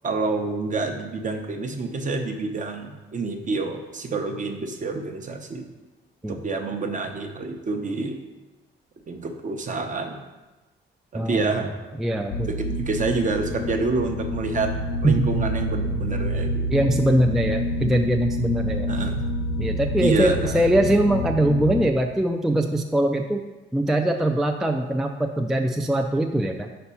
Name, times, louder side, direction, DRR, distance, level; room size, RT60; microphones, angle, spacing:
voice 1, 0.0-5.7 6.3-8.2 9.1-10.2 11.1-11.7 12.4-14.7 15.0-16.7 18.9-19.2 20.0-20.6, right 3 dB, 40° right, 4 dB, 0.8 m, -28 dB
voice 2, 11.1-11.5 12.0-12.5 15.0-15.4 16.7-18.9 19.6-23.4 23.7-26.7, right 1 dB, ahead, 4 dB, 0.3 m, -22 dB
sound 1, 12.3-21.9, left 1 dB, 70° left, 0.5 m, -28 dB
4.3 x 4.2 x 5.6 m, 1.1 s
cardioid pair, 90°, 20 cm